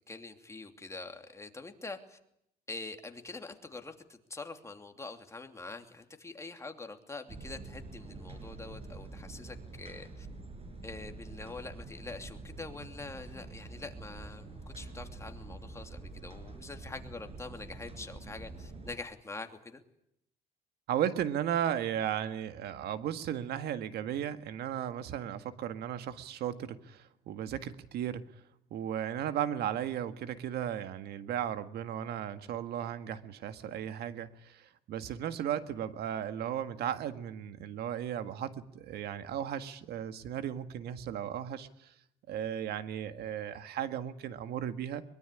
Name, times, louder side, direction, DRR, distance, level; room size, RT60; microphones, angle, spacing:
voice 1, 0.1-2.2 2.7-10.3 10.8-19.8, left 3 dB, 15° left, 5 dB, 2.8 m, -45 dB
sound 1, 7.3-19.0, right 3 dB, 35° right, 5.9 m, -46 dB
voice 2, 20.9-28.3 28.7-41.9 42.3-45.0, right 10 dB, 70° right, 10 dB, 1.8 m, -35 dB
22.5 x 22.5 x 9.9 m, 0.75 s
cardioid pair, 110°, 17 cm